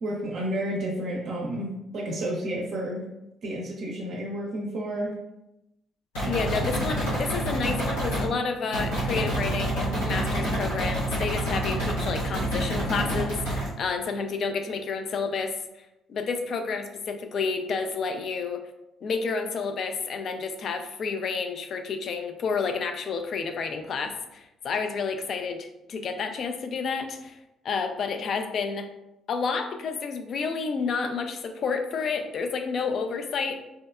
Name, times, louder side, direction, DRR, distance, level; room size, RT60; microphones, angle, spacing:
voice 1, 0.0-3.0 3.4-5.1, right 1 dB, 60° right, -3 dB, 0.5 m, -31 dB
sound 1, 6.1-8.3 8.7-13.7, right 1 dB, 85° left, 1.1 m, -27 dB
voice 2, 6.3-15.5 16.1-18.6 19.0-27.4 27.6-28.9 29.3-33.6, left 5 dB, 55° left, 6 dB, 0.3 m, -30 dB
2.7 x 2.1 x 2.3 m, 0.91 s
hypercardioid pair, 55°, 0 cm